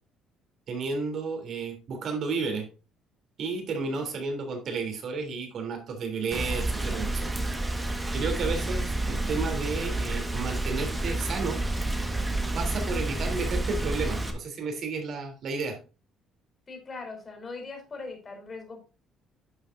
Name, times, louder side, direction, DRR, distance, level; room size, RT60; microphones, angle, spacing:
voice 1, 0.7-2.7 3.4-7.3 8.1-11.6 12.5-15.8, right 4 dB, 50° right, 4 dB, 3.4 m, -32 dB
voice 2, 3.8-4.1 16.7-18.8, left 3 dB, 25° left, 3 dB, 4.2 m, -41 dB
Rain, 6.3-14.3, right 2 dB, 10° right, 1.6 m, -29 dB
11.5 x 7.4 x 2.7 m, 0.32 s
cardioid pair, 145°, 0 cm